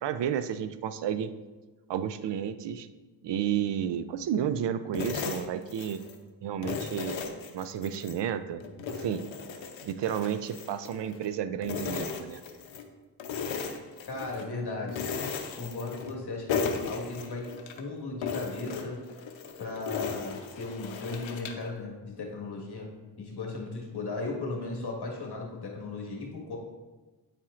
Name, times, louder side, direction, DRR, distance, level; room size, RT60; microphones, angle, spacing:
voice 1, 0.0-1.3 1.9-2.9 3.2-6.0 6.4-7.2 7.5-8.6 8.9-9.3 9.8-12.4, right 9 dB, 70° right, 12 dB, 0.5 m, -31 dB
sound 1, 4.9-6.2 6.6-8.2 8.6-11.3 11.6-12.9 13.2-14.5 14.9-16.2 16.5-17.8 18.2-21.7, left 5 dB, 90° left, 0.7 m, -36 dB
voice 2, 14.1-15.0 15.6-19.0 19.6-22.9 23.2-26.6, left 3 dB, 60° left, -1 dB, 1.6 m, -36 dB
9.1 x 4.3 x 2.4 m, 1.2 s
cardioid pair, 60°, 44 cm